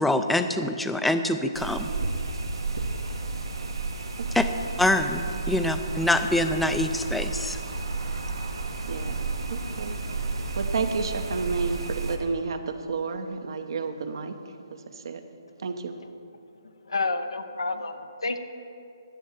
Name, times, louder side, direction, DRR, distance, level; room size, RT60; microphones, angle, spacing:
voice 1, 0.0-1.9 4.3-4.4 4.8-7.6, left 1 dB, ahead, 8 dB, 0.4 m, -25 dB
sound 1, 1.5-12.2, right 3 dB, 80° right, 1.4 m, -32 dB
voice 2, 9.5-10.0 10.6-14.3 14.7-15.2 15.6-15.9, right 4 dB, 60° right, 8 dB, 0.9 m, -31 dB
voice 3, 16.8-18.4, left 3 dB, 85° left, 8 dB, 0.9 m, -29 dB
11.0 x 6.5 x 7.4 m, 2.5 s
hypercardioid pair, 155°, 3 cm